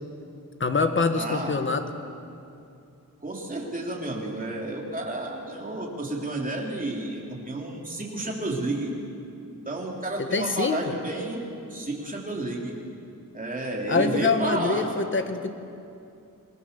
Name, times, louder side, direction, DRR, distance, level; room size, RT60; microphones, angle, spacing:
voice 1, 0.6-1.8 10.2-10.8 13.9-15.5, left 4 dB, 35° left, 7 dB, 1.5 m, -25 dB
voice 2, 1.1-1.6 3.2-8.9 9.7-11.4 11.7-12.7 13.3-14.9, right 2 dB, 25° right, -2 dB, 3.6 m, -31 dB
27.5 x 20.0 x 7.0 m, 2.6 s
wide cardioid pair, 165°, 34 cm